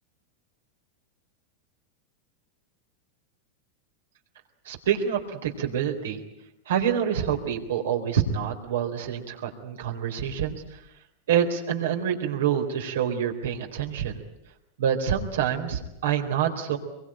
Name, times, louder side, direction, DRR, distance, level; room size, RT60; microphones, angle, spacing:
voice 1, 4.7-6.2 6.7-10.6 11.3-14.2 14.8-16.8, right 8 dB, 85° right, 4 dB, 3.9 m, -27 dB
23.5 x 23.0 x 8.9 m, 0.86 s
supercardioid pair, 130°, 0 cm